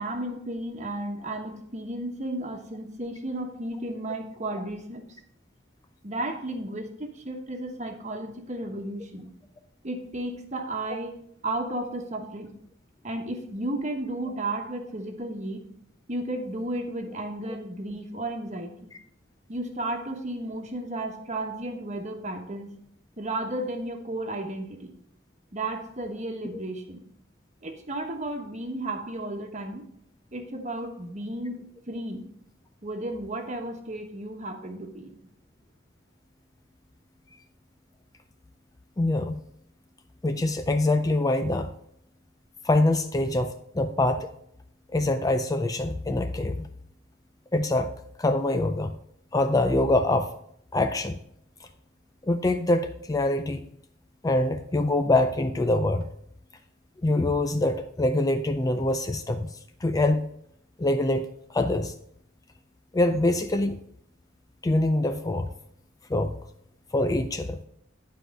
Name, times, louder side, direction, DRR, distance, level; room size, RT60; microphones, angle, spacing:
voice 1, 0.0-5.2 6.0-9.3 9.8-12.5 13.0-15.7 16.1-18.9 19.5-22.7 23.2-24.9 25.5-27.0 27.6-29.9 30.3-32.2 32.8-35.2, right 1 dB, 35° right, 4 dB, 1.2 m, -33 dB
voice 2, 39.0-39.4 40.2-41.7 42.6-44.3 44.9-46.7 47.5-47.9 48.2-48.9 49.3-50.3 50.7-51.2 52.2-53.7 54.2-56.1 57.0-60.3 60.8-61.9 62.9-63.8 64.6-65.5 66.1-66.3 66.9-67.6, left 2 dB, 20° left, 8 dB, 0.4 m, -24 dB
10.0 x 4.8 x 5.2 m, 0.71 s
head